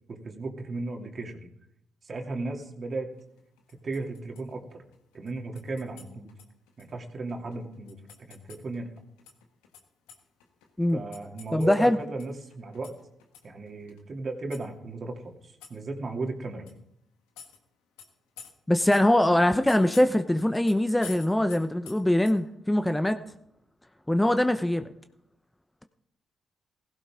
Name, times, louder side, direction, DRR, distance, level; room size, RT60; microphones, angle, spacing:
voice 1, 0.1-1.5 2.0-3.1 3.8-4.7 5.1-6.3 6.8-8.9 10.9-12.9 13.4-16.7, right 3 dB, 50° right, 2 dB, 2.8 m, -35 dB
sound 1, 3.2-9.8 10.1-12.3 12.5-14.0 14.5-14.7 15.6-15.7 16.3-16.4 16.7-16.8 17.4-17.6 18.0-18.1 18.4-18.5 18.9-19.0 19.7-20.1 20.4-20.8 21.0-22.0 22.3-22.4, left 7 dB, 85° left, 1.5 m, -48 dB
voice 2, 11.5-12.0 18.7-23.2 24.1-24.9, left 1 dB, 10° left, 9 dB, 0.9 m, -22 dB
16.5 x 15.5 x 3.7 m, 0.75 s
hypercardioid pair, 45°, 0 cm